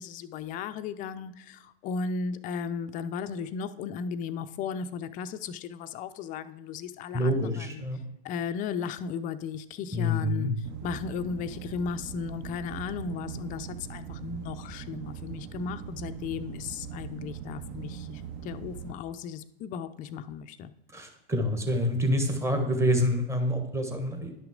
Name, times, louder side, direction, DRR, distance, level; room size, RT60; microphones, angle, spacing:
voice 1, 0.0-7.9 8.2-20.7, left 6 dB, 25° left, 11 dB, 0.4 m, -35 dB
voice 2, 7.1-8.0 9.9-10.5 20.9-24.3, equal, 10° right, 4 dB, 1.2 m, -27 dB
sound 1, 10.6-18.9, right 8 dB, 40° right, 0.6 m, -40 dB
10.5 x 5.8 x 3.7 m, 0.83 s
figure-of-eight pair, 90°, 32 cm